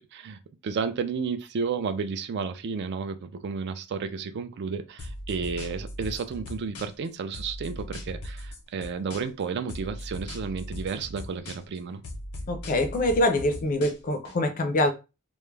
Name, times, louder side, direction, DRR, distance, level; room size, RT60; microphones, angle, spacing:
voice 1, 0.1-12.0, right 5 dB, 50° right, 0.3 m, -32 dB
sound 1, 5.0-7.1 7.3-9.4 9.7-11.8 12.0-14.3, left 1 dB, 80° left, 0.6 m, -38 dB
voice 2, 12.5-14.9, left 1 dB, 40° left, 0.4 m, -24 dB
2.2 x 2.0 x 3.1 m
head